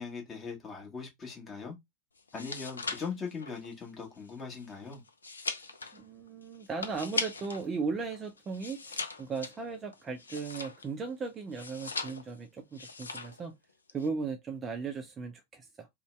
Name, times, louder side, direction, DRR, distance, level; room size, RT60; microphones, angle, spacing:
voice 1, 0.0-1.8 2.3-5.0, left 5 dB, 20° left, 1.2 m, -40 dB
sound 1, 2.2-7.7 8.0-11.0 11.5-12.4 12.7-13.4 13.7-14.1, left 4 dB, 75° left, 0.4 m, -39 dB
voice 2, 5.9-13.5 13.9-15.9, right 4 dB, 20° right, 0.5 m, -37 dB
2.6 x 2.1 x 3.1 m
figure-of-eight pair, 90°, 0 cm